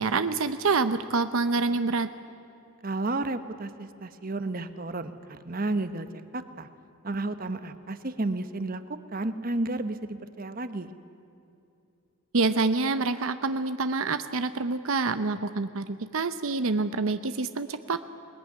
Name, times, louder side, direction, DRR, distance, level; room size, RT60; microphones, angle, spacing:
voice 1, 0.0-2.1 12.3-18.0, right 3 dB, 75° right, 11 dB, 0.8 m, -27 dB
voice 2, 2.8-6.7 7.0-10.9, right 2 dB, 40° right, 11 dB, 1.1 m, -32 dB
21.5 x 20.5 x 10.0 m, 2.7 s
head